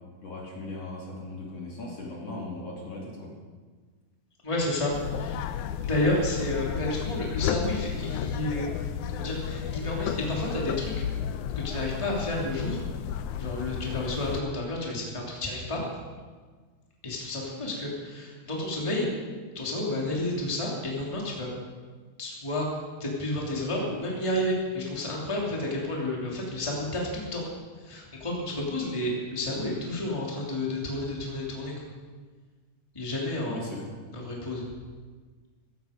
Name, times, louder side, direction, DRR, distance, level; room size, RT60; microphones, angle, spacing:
voice 1, 0.2-3.3 33.4-33.9, left 2 dB, 50° left, -3 dB, 3.7 m, -38 dB
voice 2, 4.4-5.4 5.8-8.7 9.1-11.0 11.5-12.8 13.4-15.8 17.0-19.1 19.5-21.5 22.2-22.6 23.0-27.4 27.8-31.7 32.9-33.7 34.1-34.6, left 1 dB, 10° left, -3 dB, 2.8 m, -31 dB
sound 1, 4.9-14.4, left 9 dB, 80° left, 2.0 m, -32 dB
16.5 x 15.5 x 5.2 m, 1.5 s
omnidirectional pair, 3.7 m